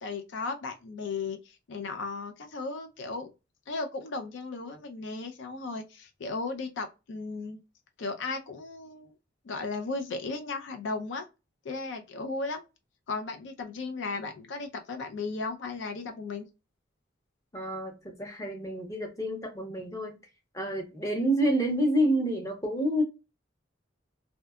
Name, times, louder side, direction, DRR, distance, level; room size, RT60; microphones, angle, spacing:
voice 1, 0.0-3.3 3.7-7.6 8.0-9.1 9.4-11.3 11.6-12.6 13.1-16.4, left 3 dB, 75° left, 0.4 m, -35 dB
voice 2, 17.5-20.2 20.5-23.0, equal, 15° left, 0.6 m, -28 dB
2.7 x 2.2 x 2.2 m
head